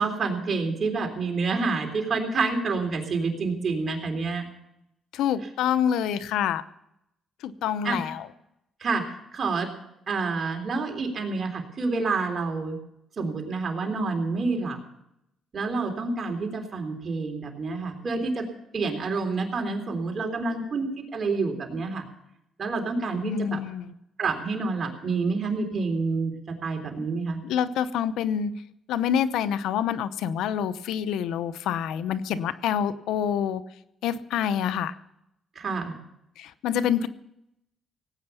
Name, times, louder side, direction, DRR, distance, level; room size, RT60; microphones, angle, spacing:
voice 1, 0.0-4.4 7.8-8.0 8.8-9.0 9.3-9.7 10.1-12.8 13.2-14.8 15.5-18.5 18.7-22.1 22.6-23.6 24.2-27.4 35.6-35.9, right 4 dB, 45° right, 4 dB, 3.5 m, -28 dB
voice 2, 5.1-6.6 7.4-8.3 23.2-23.9 27.4-28.5 28.9-33.6 34.0-34.9 36.4-37.1, left 9 dB, 85° left, 14 dB, 0.8 m, -27 dB
18.0 x 8.9 x 7.0 m, 0.80 s
cardioid pair, 90°, 0 cm